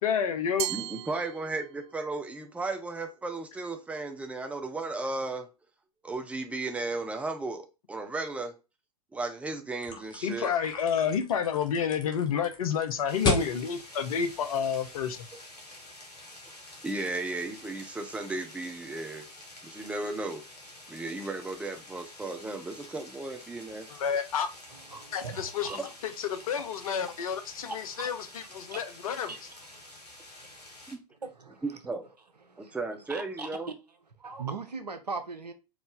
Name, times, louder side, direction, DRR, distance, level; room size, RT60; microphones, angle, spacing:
voice 1, 0.0-0.7 10.2-15.3 23.9-24.5 25.1-25.7 26.2-29.3, left 7 dB, 60° left, 0.8 m, -30 dB
Glass, 0.6-2.0, right 14 dB, 45° right, 0.4 m, -36 dB
voice 2, 0.7-5.5 6.0-8.5 9.1-10.5 16.8-19.3 19.6-20.4 20.9-23.9 25.7-25.9 30.9-31.0 31.8-32.1 32.6-33.7, right 3 dB, 5° right, 0.7 m, -35 dB
sound 1, 9.8-15.2, left 3 dB, 20° left, 1.2 m, -35 dB
sound 2, 13.1-30.9, left 1 dB, 80° left, 1.5 m, -49 dB
voice 3, 24.7-25.9 27.7-28.3 28.6-28.8 29.3-29.4 29.7-29.9 30.3-30.6 31.2-31.6 32.4-32.8 33.1-33.7 34.2-35.5, right 4 dB, 85° right, 0.8 m, -40 dB
4.7 x 2.6 x 3.8 m
figure-of-eight pair, 95°, 20 cm